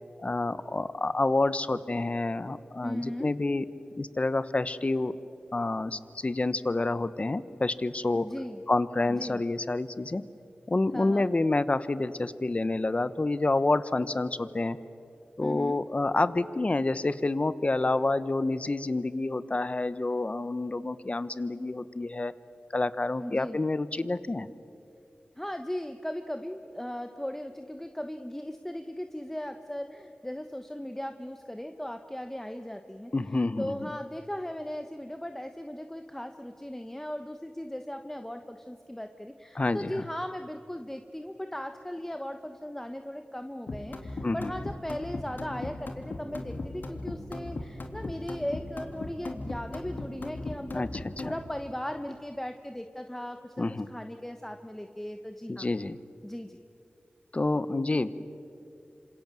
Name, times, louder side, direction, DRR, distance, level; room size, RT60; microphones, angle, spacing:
voice 1, 0.2-3.7 4.0-5.1 5.5-8.3 8.7-10.2 10.7-14.8 15.4-22.3 22.7-24.5 33.1-33.9 39.5-40.0 44.2-44.5 50.7-50.9 53.6-53.9 55.5-56.0 57.3-58.1, left 2 dB, 40° left, 14 dB, 1.1 m, -28 dB
voice 2, 2.8-3.3 8.1-8.6 9.0-9.4 10.9-11.3 15.4-15.8 23.2-23.6 25.4-33.1 33.6-55.7 56.2-56.6, equal, 10° left, 7 dB, 1.2 m, -37 dB
sound 1, 43.7-51.4, left 2 dB, 70° left, 2.8 m, -37 dB
27.5 x 26.5 x 7.7 m, 2.7 s
cardioid pair, 55°, 3 cm